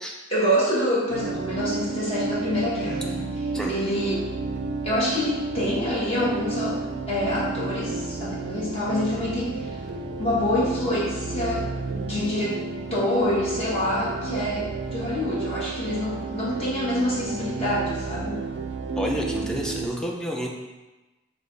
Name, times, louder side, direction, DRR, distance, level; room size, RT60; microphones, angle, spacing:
voice 1, 0.3-4.3 4.8-6.8 7.1-9.8 10.2-11.7 11.9-12.6 12.9-18.4, left 1 dB, 30° left, -8 dB, 1.5 m, -26 dB
sound 1, 1.1-19.9, right 4 dB, 60° right, 0.4 m, -31 dB
voice 2, 19.0-20.5, equal, 5° left, -1 dB, 0.5 m, -29 dB
6.4 x 2.3 x 3.3 m, 1.1 s
head